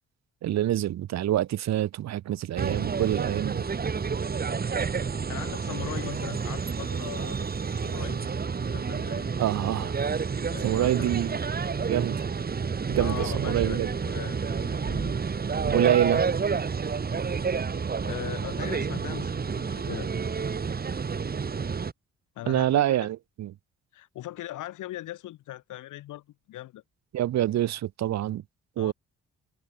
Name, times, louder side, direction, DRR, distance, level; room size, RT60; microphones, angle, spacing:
voice 1, 0.4-3.7 9.4-10.0 10.6-11.4 11.9-12.2 12.9-13.9 15.6-16.2 22.5-23.5 27.1-28.4 28.8-28.9, right 12 dB, 60° right, 0.7 m, -26 dB
sound 1, 2.6-21.9, right 5 dB, 30° right, 1.0 m, -29 dB
voice 2, 5.3-8.3 8.7-9.3 10.5-11.5 13.0-15.1 18.0-20.1 22.3-23.1 23.9-26.8 28.8-28.9, left 15 dB, 75° left, 1.6 m, -40 dB
hypercardioid pair, 50°, 31 cm